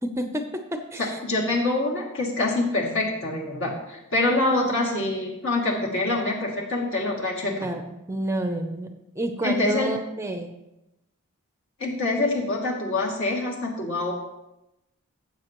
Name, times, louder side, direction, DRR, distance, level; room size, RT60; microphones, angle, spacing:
voice 1, 0.0-1.2 7.5-7.8 8.1-8.9 9.2-10.5, right 1 dB, 10° right, 6 dB, 0.6 m, -29 dB
voice 2, 1.0-7.7 9.4-9.9 11.8-14.1, left 2 dB, 60° left, -2 dB, 2.5 m, -25 dB
16.5 x 7.3 x 3.0 m, 0.92 s
head